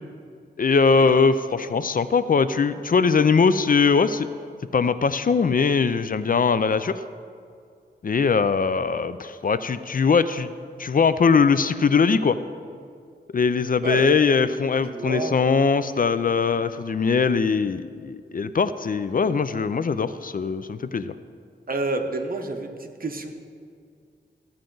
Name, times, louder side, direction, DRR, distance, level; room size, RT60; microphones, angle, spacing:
voice 1, 0.6-4.3 4.7-6.9 8.0-10.5 10.8-12.4 13.3-21.1, left 5 dB, 50° left, 13 dB, 0.4 m, -21 dB
voice 2, 14.8-15.3 21.7-23.3, right 2 dB, 50° right, 4 dB, 1.0 m, -29 dB
14.5 x 8.7 x 3.9 m, 2.2 s
wide cardioid pair, 75°, 18 cm